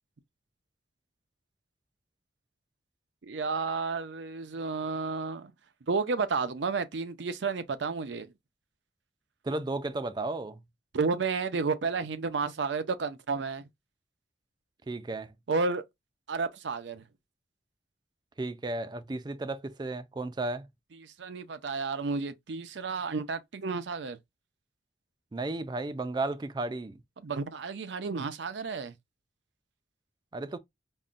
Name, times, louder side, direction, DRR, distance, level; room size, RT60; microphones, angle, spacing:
voice 1, 3.2-5.5 5.9-8.3 10.9-13.7 15.5-15.8 16.3-17.0 21.0-24.2 27.2-28.9, right 4 dB, 75° right, 0.5 m, -31 dB
voice 2, 9.4-10.6 14.9-15.3 18.4-20.7 25.3-27.0 30.3-30.6, right 2 dB, 25° right, 0.3 m, -34 dB
5.4 x 2.1 x 2.5 m
head